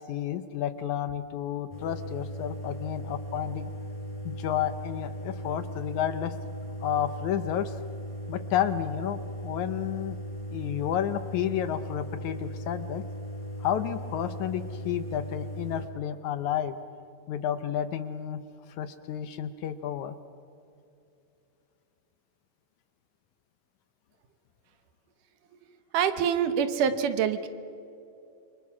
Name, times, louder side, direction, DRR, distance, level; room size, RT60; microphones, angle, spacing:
voice 1, 0.0-3.7 4.3-6.4 6.8-7.8 8.3-10.2 10.5-13.0 13.6-16.8 17.3-18.4 18.8-20.2, left 10 dB, 75° left, 11 dB, 1.9 m, -31 dB
sound 1, 1.7-15.9, equal, 10° left, 4.5 m, -38 dB
voice 2, 25.9-27.5, right 8 dB, 75° right, 10 dB, 2.6 m, -25 dB
28.0 x 25.0 x 6.2 m, 2.7 s
omnidirectional pair, 3.9 m